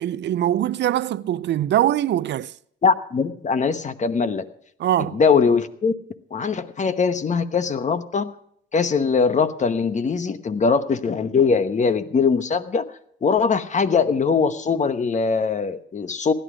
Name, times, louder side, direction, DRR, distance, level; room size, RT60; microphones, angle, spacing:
voice 1, 0.0-2.5 4.8-5.2, right 12 dB, 65° right, 0.5 m, -22 dB
voice 2, 2.8-4.5 5.1-5.9 6.3-8.3 8.7-12.9 13.2-16.3, left 5 dB, 35° left, 1.1 m, -21 dB
16.0 x 11.5 x 5.0 m
cardioid pair, 90°, 20 cm